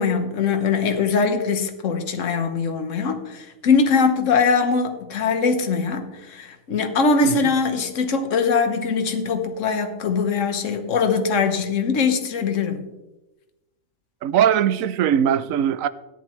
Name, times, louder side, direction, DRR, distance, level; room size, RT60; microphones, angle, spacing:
voice 1, 0.0-12.9, left 5 dB, 70° left, 1.4 m, -22 dB
voice 2, 14.2-15.9, right 9 dB, 85° right, 1.0 m, -20 dB
14.0 x 10.0 x 3.2 m
omnidirectional pair, 1.4 m